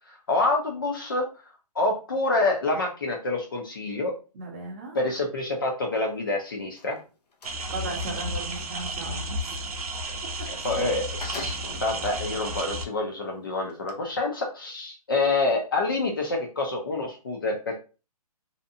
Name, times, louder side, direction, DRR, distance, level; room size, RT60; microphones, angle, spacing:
voice 1, 0.1-1.3 1.7-4.1 4.9-7.0 10.1-10.2 10.4-17.8, left 2 dB, 35° left, 1 dB, 0.5 m, -27 dB
voice 2, 4.3-5.0 7.7-9.2 10.7-10.8, right 2 dB, 20° right, -2 dB, 0.6 m, -36 dB
sound 1, 6.7-7.6 10.5-10.6 10.9-12.0 12.6-12.7 13.7-13.9, left 3 dB, 85° left, 0.8 m, -41 dB
sound 2, 7.4-12.8, right 1 dB, 65° right, 0.6 m, -33 dB
2.7 x 2.2 x 2.6 m, 0.32 s
hypercardioid pair, 175°, 20 cm